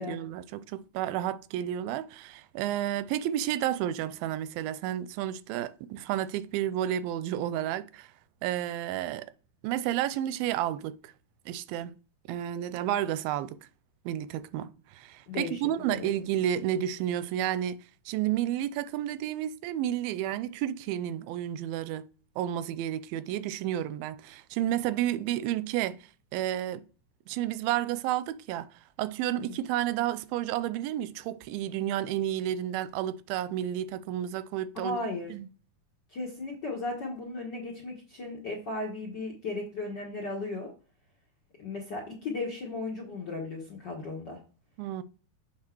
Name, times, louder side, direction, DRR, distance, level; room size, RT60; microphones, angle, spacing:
voice 1, 0.0-8.1 8.4-9.3 9.6-11.1 11.5-11.9 12.3-13.6 14.1-17.8 18.1-22.1 22.4-26.0 26.3-26.8 27.3-28.7 29.0-35.0 35.3-35.5 44.8-45.0, right 12 dB, 90° right, 2.4 m, -31 dB
voice 2, 15.3-15.6 15.9-16.1 29.3-29.6 34.7-35.3 36.1-40.7 41.6-44.4, left 3 dB, 70° left, 1.0 m, -36 dB
7.4 x 4.6 x 4.5 m
omnidirectional pair, 4.1 m